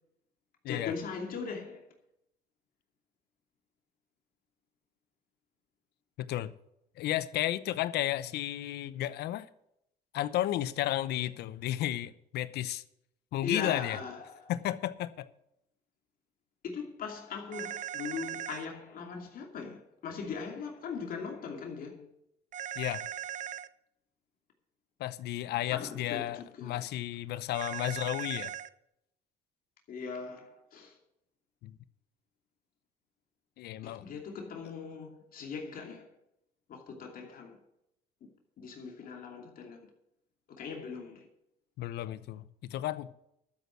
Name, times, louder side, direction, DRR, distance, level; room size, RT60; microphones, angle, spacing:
voice 1, 0.7-1.8 13.4-14.5 16.6-22.1 25.7-26.8 29.9-31.0 33.8-36.1 36.7-37.6 38.6-39.8 40.6-41.3, left 5 dB, 55° left, 2.7 m, -40 dB
voice 2, 6.2-6.5 7.0-9.5 10.1-12.8 13.3-14.0 14.5-15.3 22.8-23.0 25.0-28.5 31.6-31.8 33.6-34.1 41.8-43.1, left 13 dB, 75° left, 0.8 m, -33 dB
sound 1, 17.5-18.7 22.5-23.7 27.5-28.7, right 10 dB, 45° right, 0.7 m, -39 dB
12.5 x 8.4 x 6.1 m
cardioid pair, 110°, 17 cm